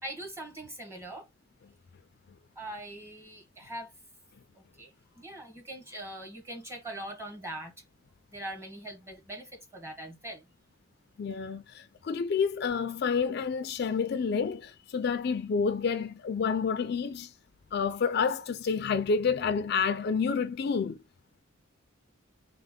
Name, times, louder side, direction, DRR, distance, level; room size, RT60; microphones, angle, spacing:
voice 1, 0.0-1.3 2.6-3.9 4.8-4.9 5.2-7.7 8.3-10.4, right 1 dB, 15° right, 1.2 m, -41 dB
voice 2, 11.2-17.3 17.7-21.0, left 5 dB, 50° left, 0.3 m, -29 dB
3.2 x 2.1 x 3.6 m
head